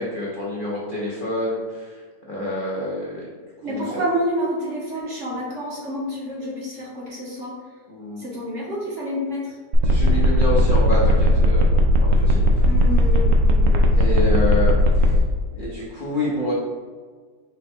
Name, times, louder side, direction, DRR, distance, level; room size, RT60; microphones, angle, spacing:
voice 1, 0.0-2.0 2.3-3.3 3.6-3.8 7.9-8.2 9.8-11.7 12.0-12.4 13.9-15.2 15.5-16.5, left 1 dB, 70° left, -5 dB, 0.4 m, -27 dB
voice 2, 3.6-7.6 8.2-9.6 12.6-13.8, equal, 55° right, -4 dB, 0.9 m, -28 dB
sound 1, 9.7-15.2, right 1 dB, 85° right, 0.7 m, -17 dB
5.0 x 2.2 x 4.2 m, 1.5 s
omnidirectional pair, 2.0 m